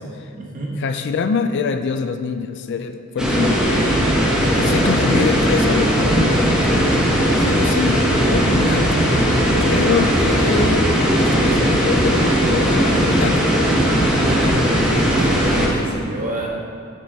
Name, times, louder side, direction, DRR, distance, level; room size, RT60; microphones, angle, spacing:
voice 1, 0.0-0.7 4.3-4.8 14.2-16.5, right 1 dB, 40° right, -2 dB, 1.1 m, -30 dB
voice 2, 0.8-3.9 4.6-7.1 7.4-9.1 9.6-13.4, left 5 dB, 55° left, 8 dB, 0.3 m, -25 dB
sound 1, 3.2-15.7, equal, 5° right, 1.1 m, -17 dB
sound 2, 7.5-14.6, equal, 85° right, 1.0 m, -36 dB
7.6 x 7.5 x 2.8 m, 2.4 s
head